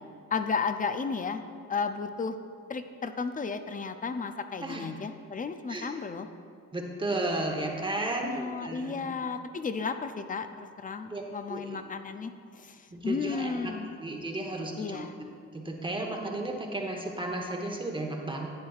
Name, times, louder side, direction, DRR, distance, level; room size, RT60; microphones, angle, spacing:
voice 1, 0.3-1.4 1.7-2.3 2.7-6.3 8.2-14.0 14.8-15.1, left 5 dB, 30° left, 9 dB, 0.5 m, -33 dB
voice 2, 6.7-9.1 11.1-11.2 11.5-11.8 12.9-13.7 14.0-15.1 15.5-18.5, right 2 dB, 15° right, 1 dB, 1.0 m, -33 dB
10.5 x 9.0 x 2.4 m, 2.3 s
cardioid pair, 90°, 30 cm